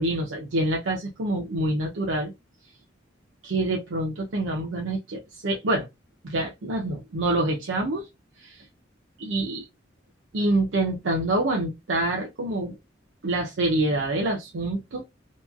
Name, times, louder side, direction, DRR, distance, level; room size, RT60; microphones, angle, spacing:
voice 1, 0.0-2.3 3.4-5.9 6.2-8.1 8.4-8.6 9.2-9.7 10.3-12.8 13.2-15.0, right 2 dB, 80° right, 0.6 m, -26 dB
2.9 x 2.2 x 2.3 m
head